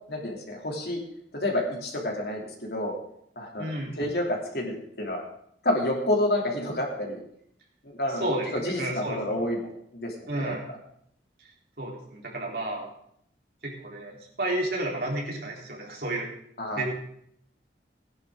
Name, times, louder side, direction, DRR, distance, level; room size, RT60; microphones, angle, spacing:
voice 1, 0.1-1.0 1.3-3.0 3.4-4.2 4.5-5.2 5.6-7.2 7.8-8.3 8.5-10.5 16.6-16.8, left 1 dB, 60° left, 0 dB, 3.1 m, -29 dB
voice 2, 3.6-3.9 8.2-9.2 10.3-10.7 11.8-12.9 13.6-16.3 16.8-16.9, right 1 dB, 55° right, -3 dB, 3.9 m, -31 dB
18.0 x 10.5 x 3.8 m, 0.70 s
head